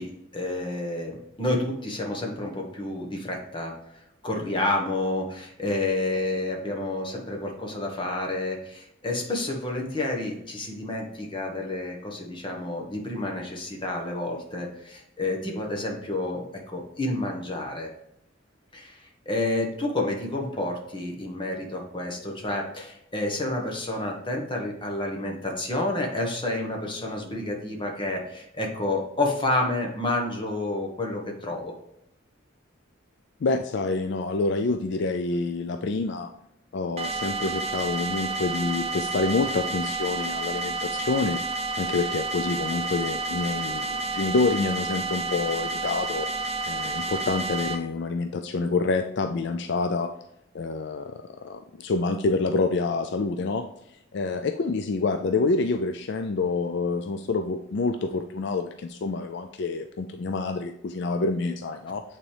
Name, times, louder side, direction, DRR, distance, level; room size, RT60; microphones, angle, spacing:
voice 1, 0.0-17.9 18.7-31.7, left 2 dB, 25° left, 0 dB, 1.4 m, -30 dB
voice 2, 33.4-36.3 36.7-41.4 41.8-46.3 46.7-50.1 50.5-53.7 54.1-62.0, left 3 dB, 60° left, 7 dB, 0.4 m, -27 dB
sound 1, 37.0-47.8, right 3 dB, 30° right, 0.9 m, -30 dB
8.6 x 4.1 x 3.4 m, 0.80 s
head